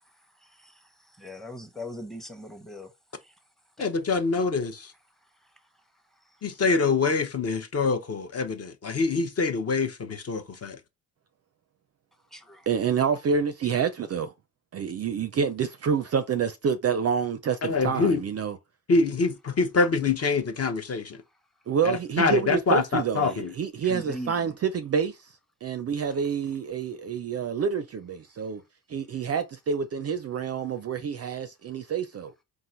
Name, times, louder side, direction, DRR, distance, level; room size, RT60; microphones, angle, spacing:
voice 1, 1.2-2.9 3.8-3.9 12.3-12.7 23.2-23.3 23.8-24.5, equal, ahead, 0.8 m, -40 dB
voice 2, 3.8-4.9 6.4-10.8 17.6-18.2 18.9-21.2 21.8-23.5, left 4 dB, 35° left, 0.7 m, -25 dB
voice 3, 12.7-14.3 14.7-18.6 21.7-25.2 25.6-28.6 28.9-32.3, right 6 dB, 35° right, 0.4 m, -28 dB
3.8 x 2.5 x 4.3 m
cardioid pair, 80°, 43 cm